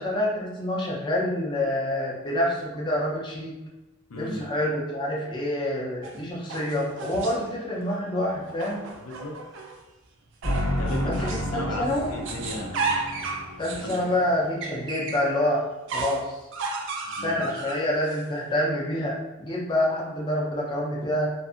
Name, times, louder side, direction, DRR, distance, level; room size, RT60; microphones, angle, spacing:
voice 1, 0.0-3.6 4.2-8.8 11.0-12.1 13.6-15.6 15.9-16.4 17.1-21.3, left 1 dB, 20° left, -4 dB, 0.5 m, -27 dB
voice 2, 4.1-4.4 8.9-9.4 10.8-12.8 13.8-14.1 17.1-17.5, left 1 dB, 80° left, 0 dB, 0.5 m, -35 dB
sound 1, 6.0-7.6 8.5-9.8 10.4-11.5 11.9-15.3 15.9-18.2, right 4 dB, 60° right, 0.4 m, -34 dB
sound 2, 10.4-14.5, equal, 80° right, 0.9 m, -31 dB
2.6 x 2.5 x 2.4 m, 1.0 s
head